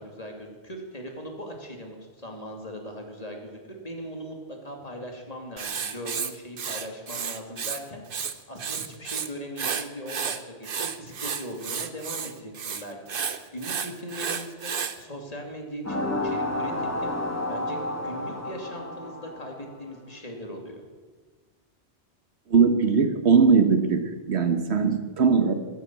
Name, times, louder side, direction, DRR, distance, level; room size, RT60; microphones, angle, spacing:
voice 1, 0.0-8.0 8.5-13.0 13.3-14.7 15.0-17.2 17.5-20.8, equal, 35° left, 2 dB, 2.8 m, -39 dB
Writing, 5.6-7.8 8.1-9.3 9.6-15.0, right 6 dB, 55° right, 1.1 m, -32 dB
sound 1, 15.8-19.8, left 1 dB, 15° left, 2.3 m, -30 dB
voice 2, 22.5-25.5, right 5 dB, 75° right, 8 dB, 1.5 m, -20 dB
15.0 x 10.5 x 8.6 m, 1.4 s
omnidirectional pair, 1.1 m